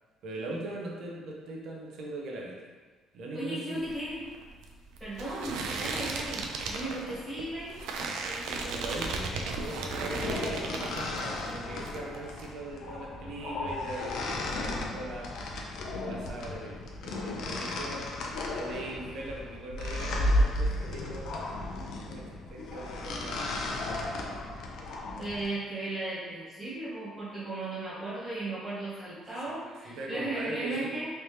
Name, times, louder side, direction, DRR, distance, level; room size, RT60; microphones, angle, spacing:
voice 1, 0.2-2.7 3.1-3.8 8.2-15.3 15.8-18.1 18.6-21.5 22.1-24.2 29.5-29.6 29.8-30.9, right 2 dB, 55° right, -2 dB, 0.7 m, -40 dB
voice 2, 3.3-4.2 5.0-6.4 6.7-7.7 25.2-31.1, right 2 dB, 10° right, -11 dB, 1.3 m, -36 dB
sound 1, 3.8-11.5 11.8-12.5, right 3 dB, 90° right, 0.4 m, -36 dB
sound 2, 9.6-25.5, left 1 dB, 60° left, 0.4 m, -34 dB
3.3 x 2.8 x 3.2 m, 1.4 s
cardioid pair, 175°, 0 cm